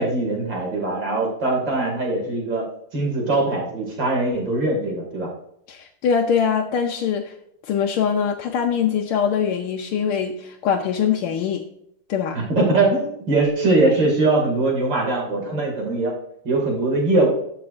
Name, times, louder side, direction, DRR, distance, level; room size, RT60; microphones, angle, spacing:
voice 1, 0.0-2.6 2.9-5.3 12.3-16.1 16.4-17.3, right 2 dB, 55° right, -1 dB, 3.2 m, -21 dB
voice 2, 5.7-7.3 7.6-11.6 12.1-12.4, left 7 dB, 80° left, 1 dB, 1.6 m, -23 dB
15.0 x 5.9 x 2.6 m, 0.71 s
omnidirectional pair, 2.4 m